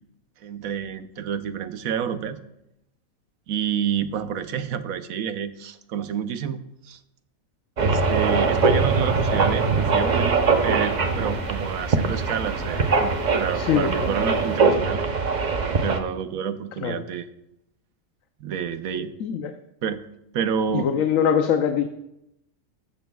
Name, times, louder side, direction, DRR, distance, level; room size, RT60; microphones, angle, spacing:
voice 1, 0.4-2.4 3.5-7.0 7.8-15.0 15.8-17.3 18.4-19.2 19.8-20.0 20.3-20.9, right 8 dB, 80° right, 11 dB, 1.2 m, -29 dB
sound 1, 7.8-16.0, right 4 dB, 40° right, 0.8 m, -22 dB
sound 2, 8.0-14.6, left 1 dB, 15° left, 3.6 m, -43 dB
voice 2, 13.6-13.9 14.2-14.3 16.8-17.0 19.2-19.4 20.7-21.9, left 8 dB, 75° left, 6 dB, 1.1 m, -22 dB
14.0 x 13.5 x 2.3 m, 0.85 s
omnidirectional pair, 1.4 m